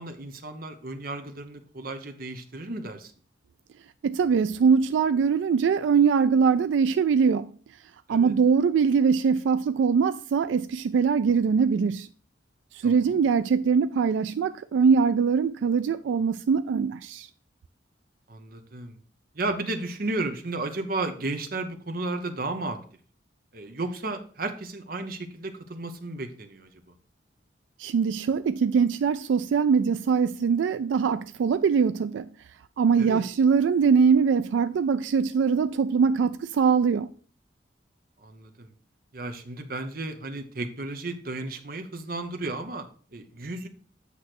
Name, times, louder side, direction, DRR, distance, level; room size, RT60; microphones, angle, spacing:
voice 1, 0.0-3.1 8.1-8.3 12.8-12.9 18.3-19.0 19.3-22.8 23.5-26.7 33.0-33.2 38.2-38.7 39.1-43.7, right 2 dB, 50° right, 0.9 m, -33 dB
voice 2, 4.0-7.5 8.1-12.1 12.7-17.3 27.8-32.3 32.8-37.1, right 6 dB, 85° right, 0.3 m, -22 dB
8.4 x 3.2 x 6.0 m
head